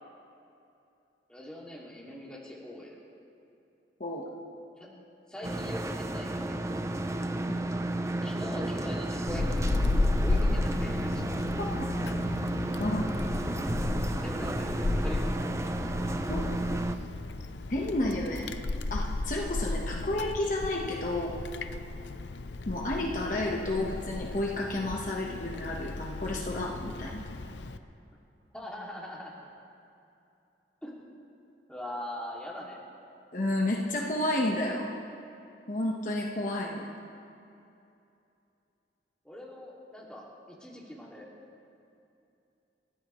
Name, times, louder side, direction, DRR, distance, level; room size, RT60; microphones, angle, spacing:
voice 1, 1.3-3.0 4.8-4.9 5.3-6.8 8.2-9.8 10.2-11.2 13.8-15.6 28.5-29.4 30.8-31.1 31.7-32.8 39.2-41.3, left 1 dB, 5° left, -4 dB, 2.5 m, -42 dB
sound 1, 5.4-17.0, right 1 dB, 15° right, 0.5 m, -32 dB
Wind, 9.3-27.8, left 2 dB, 80° left, 0.6 m, -33 dB
voice 2, 17.7-18.4 18.9-21.4 22.7-27.2 33.3-34.9 35.7-36.9, left 1 dB, 45° left, -2 dB, 1.3 m, -31 dB
29.0 x 13.5 x 3.2 m, 2.7 s
head